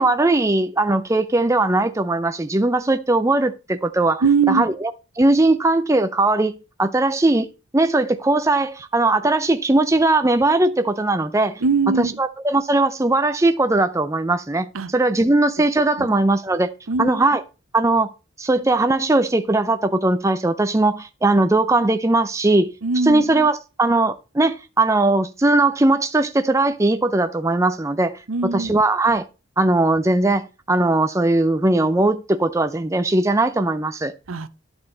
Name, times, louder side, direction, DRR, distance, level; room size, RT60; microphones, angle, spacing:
voice 1, 0.0-4.7 5.2-7.5 7.7-11.6 12.0-16.7 17.0-17.4 17.7-18.1 18.4-22.7 23.0-29.3 29.6-34.1, right 2 dB, 15° right, 0.5 m, -19 dB
voice 2, 4.2-4.6 11.6-12.2 14.7-14.9 16.0-16.1 16.9-17.1 22.8-23.2 28.3-28.7 34.3-34.5, right 4 dB, 80° right, 0.7 m, -21 dB
10.5 x 6.1 x 3.9 m
head